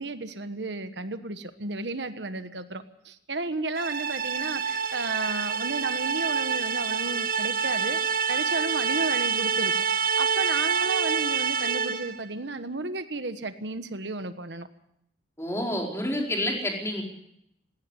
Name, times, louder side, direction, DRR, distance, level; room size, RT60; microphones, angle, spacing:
voice 1, 0.0-14.7, right 3 dB, 75° right, 10 dB, 1.3 m, -33 dB
sound 1, 3.8-12.2, right 6 dB, 50° right, 1.3 m, -27 dB
voice 2, 15.4-17.0, left 1 dB, 15° left, 0 dB, 4.7 m, -28 dB
19.5 x 17.0 x 8.3 m, 0.77 s
head